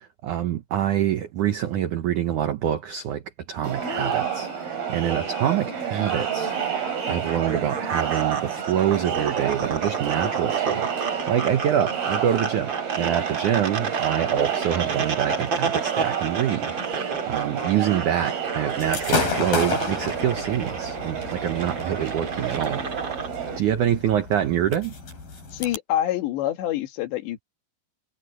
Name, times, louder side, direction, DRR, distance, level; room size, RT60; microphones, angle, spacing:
voice 1, 0.0-3.2 3.5-22.9 23.6-24.9, right 10 dB, 80° right, 1.8 m, -26 dB
Crowd, 3.6-23.6, right 8 dB, 60° right, 7.0 m, -29 dB
sound 1, 7.0-23.3, right 4 dB, 35° right, 2.3 m, -32 dB
Gunshot gunfire / Fireworks, 18.8-25.8, left 4 dB, 55° left, 8.8 m, -32 dB
voice 2, 25.5-27.4, left 12 dB, 80° left, 4.0 m, -26 dB
omnidirectional pair, 5.1 m